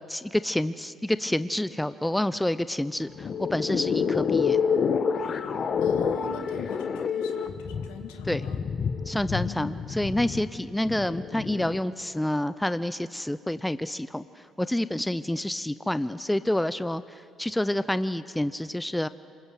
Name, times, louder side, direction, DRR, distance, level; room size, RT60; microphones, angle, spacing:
voice 1, 0.1-4.6 8.3-8.5 9.1-19.1, left 1 dB, 5° left, 14 dB, 0.7 m, -28 dB
sound 1, 3.0-11.8, left 6 dB, 50° left, 1.4 m, -28 dB
voice 2, 5.8-8.6 9.4-9.7, left 7 dB, 75° left, 5 dB, 2.0 m, -42 dB
27.0 x 20.0 x 8.1 m, 2.6 s
hypercardioid pair, 50°, 0 cm